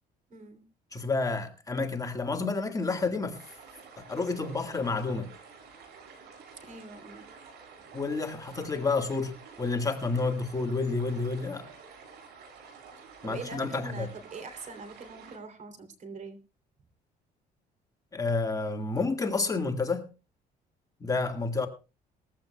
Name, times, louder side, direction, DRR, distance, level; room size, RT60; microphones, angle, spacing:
voice 1, 0.3-0.6 6.6-7.3 7.8-7.9 13.0-16.4, right 3 dB, 45° right, 3.2 m, -43 dB
voice 2, 0.9-3.4 4.1-5.3 7.9-11.7 13.2-14.1 18.1-20.1 21.0-21.7, left 3 dB, 20° left, 1.8 m, -30 dB
sound 1, 3.3-15.4, right 5 dB, 75° right, 6.8 m, -50 dB
20.0 x 15.0 x 2.3 m
cardioid pair, 110°, 17 cm